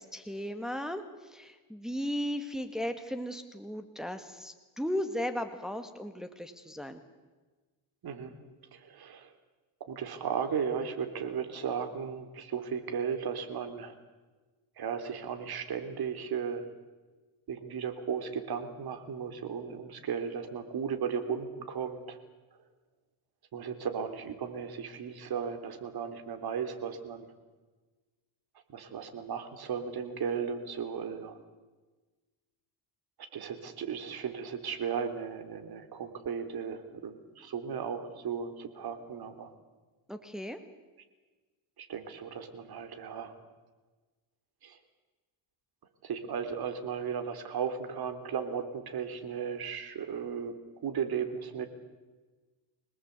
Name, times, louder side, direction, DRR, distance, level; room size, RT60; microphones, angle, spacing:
voice 1, 0.0-7.0 40.1-40.6, equal, ahead, 6 dB, 2.0 m, -36 dB
voice 2, 8.7-9.3 9.8-14.0 14.8-16.6 17.5-22.2 23.5-27.3 28.7-31.4 33.3-39.5 41.8-43.4 44.6-44.8 46.0-50.6 50.8-51.7, right 7 dB, 55° right, 8 dB, 3.5 m, -35 dB
26.0 x 19.0 x 8.3 m, 1.3 s
cardioid pair, 100°, 44 cm